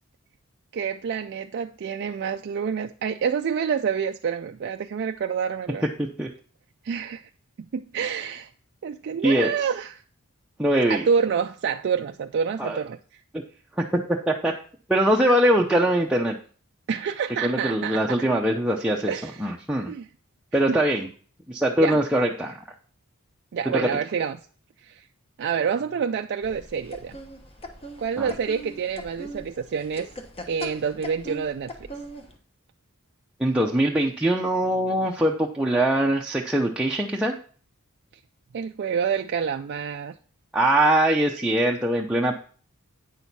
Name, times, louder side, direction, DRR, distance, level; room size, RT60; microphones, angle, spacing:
voice 1, 0.7-5.8 6.8-7.3 7.7-8.5 8.8-10.0 10.9-13.0 16.9-18.0 19.1-19.5 19.9-20.1 20.7-20.8 21.8-22.0 23.5-24.4 24.8-25.0 25.4-27.2 28.0-30.1 30.5-31.7 38.5-40.1, right 6 dB, 50° right, 5 dB, 0.4 m, -27 dB
voice 2, 10.6-11.1 12.6-12.8 14.3-14.5 14.9-16.4 17.4-19.9 20.5-21.1 21.5-22.6 23.7-23.9 28.2-28.3 33.4-37.3 40.5-42.3, right 1 dB, 5° right, -2 dB, 0.6 m, -22 dB
sound 1, 26.4-32.4, equal, 25° left, 1.0 m, -40 dB
9.0 x 6.3 x 4.1 m, 0.42 s
head